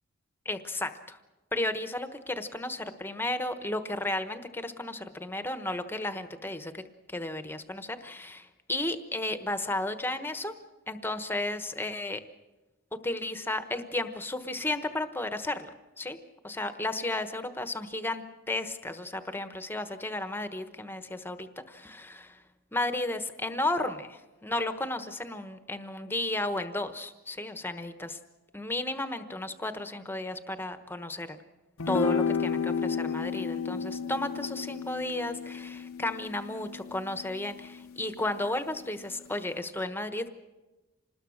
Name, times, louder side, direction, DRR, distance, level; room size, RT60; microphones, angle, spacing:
voice 1, 0.4-1.2 1.5-6.8 7.1-10.5 10.9-12.2 12.9-15.7 16.0-16.2 16.4-22.4 22.7-28.2 28.5-31.4 31.9-40.3, left 2 dB, 10° left, 9 dB, 1.1 m, -33 dB
sound 1, 31.8-38.3, left 5 dB, 80° left, 0.9 m, -32 dB
26.5 x 20.0 x 6.4 m, 1.1 s
head